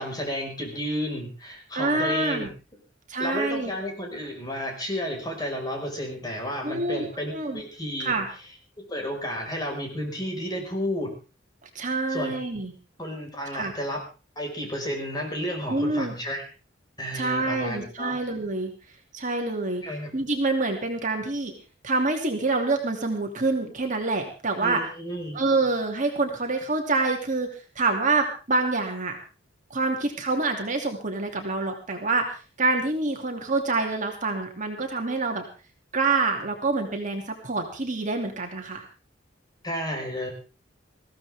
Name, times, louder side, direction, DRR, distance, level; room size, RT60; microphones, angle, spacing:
voice 1, 0.0-2.5 3.2-8.2 8.8-11.1 12.1-12.3 13.0-14.0 14.4-16.4 17.0-18.2 19.8-20.1 24.6-25.4 39.6-40.3, equal, 20° left, 1 dB, 5.4 m, -32 dB
voice 2, 1.7-2.5 3.1-3.7 6.6-7.6 8.0-8.3 11.7-12.7 13.5-13.7 15.7-16.1 17.1-18.7 19.1-19.8 20.1-21.5 21.8-24.8 25.3-29.2 29.7-32.2 32.6-35.4 35.9-38.8, right 3 dB, 40° right, 3 dB, 2.9 m, -26 dB
21.0 x 15.5 x 3.6 m, 0.34 s
head